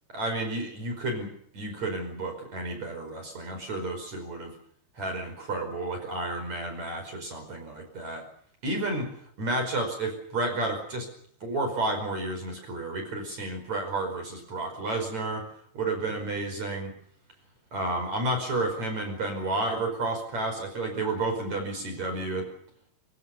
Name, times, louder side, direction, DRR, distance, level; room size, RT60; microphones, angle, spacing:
voice 1, 0.1-4.5 5.0-8.2 8.6-9.1 9.4-11.1 11.4-15.5 15.7-16.9 17.7-22.5, right 2 dB, 40° right, 4 dB, 6.2 m, -31 dB
24.0 x 23.5 x 6.9 m, 0.65 s
omnidirectional pair, 4.8 m